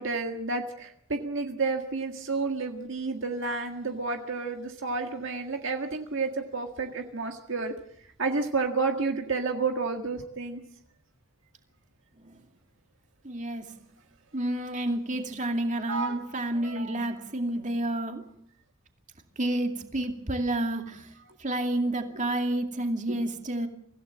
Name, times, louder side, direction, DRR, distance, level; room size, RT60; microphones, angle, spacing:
voice 1, 0.0-7.7 8.2-10.6 15.9-16.2 16.6-17.1 23.1-23.2, right 4 dB, 60° right, 1.8 m, -30 dB
voice 2, 13.2-13.7 14.3-18.2 19.4-21.1 21.4-23.7, right 1 dB, 35° right, 2.4 m, -30 dB
25.0 x 16.5 x 7.5 m
head